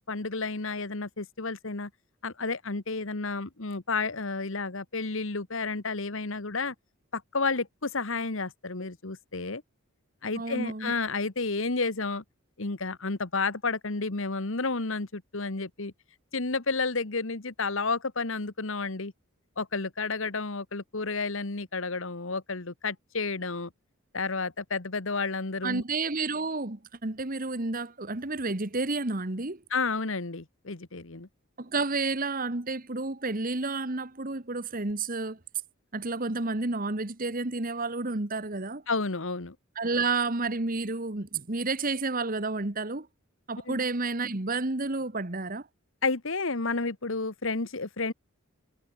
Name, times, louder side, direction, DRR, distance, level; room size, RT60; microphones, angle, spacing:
voice 1, 0.0-1.9 2.2-6.7 7.1-9.6 10.2-12.2 12.6-15.9 16.3-19.1 19.6-23.7 24.1-25.8 29.7-31.3 38.9-39.5 43.7-43.8 46.0-48.1, left 4 dB, 65° left, 1.4 m, -31 dB
voice 2, 10.4-10.9 25.6-29.6 31.6-35.4 35.9-38.8 39.7-43.1 43.5-45.7, right 3 dB, 40° right, 1.5 m, -30 dB
head